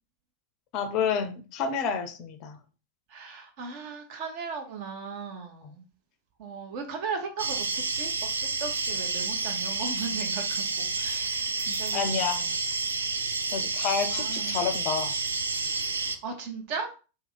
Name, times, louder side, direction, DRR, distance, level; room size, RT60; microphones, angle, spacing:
voice 1, 0.7-2.6 5.6-5.7 11.9-12.5 13.5-15.1, left 6 dB, 40° left, 7 dB, 0.5 m, -29 dB
voice 2, 3.1-5.8 6.4-8.1 8.4-12.2 14.1-14.6 16.2-16.9, right 5 dB, 45° right, 4 dB, 0.9 m, -37 dB
sound 1, 7.4-16.2, right 4 dB, 75° right, 0.3 m, -30 dB
2.8 x 2.1 x 3.9 m, 0.33 s
figure-of-eight pair, 90°, 0 cm